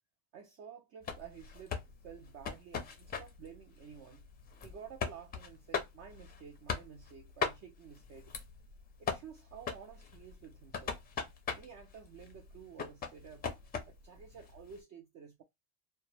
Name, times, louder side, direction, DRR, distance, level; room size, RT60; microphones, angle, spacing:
voice 1, 0.3-4.3 4.6-8.3 9.0-11.0 11.5-15.4, right 7 dB, 40° right, 0.4 m, -52 dB
sound 1, 1.0-14.8, left 6 dB, 20° left, 0.4 m, -41 dB
2.1 x 2.0 x 3.1 m
supercardioid pair, 120°, 45 cm